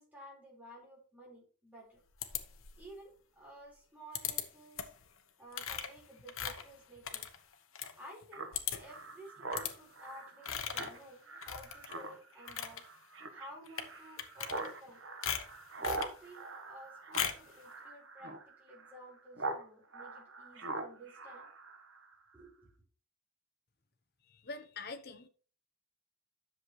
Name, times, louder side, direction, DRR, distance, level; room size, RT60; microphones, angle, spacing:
voice 1, 0.0-2.0 2.8-4.9 5.4-7.2 8.0-12.8 13.3-15.0 15.8-21.5 22.3-22.7, right 1 dB, 10° right, 4.6 m, -53 dB
Mouse Clicks & Scrolls, 2.2-2.9 4.1-4.4 4.8-5.0 5.5-7.9 8.2-8.3 8.5-9.0 9.5-9.7 10.4-11.0 11.4-12.0 12.3-12.8 13.7-13.9 14.2-14.9 15.2-16.1 17.1-17.5, left 9 dB, 70° left, 1.1 m, -38 dB
Speech synthesizer, 8.3-19.6 19.9-22.1, right 2 dB, 60° right, 1.3 m, -43 dB
voice 2, 24.3-25.3, left 3 dB, 45° left, 0.9 m, -45 dB
10.5 x 7.0 x 3.2 m
head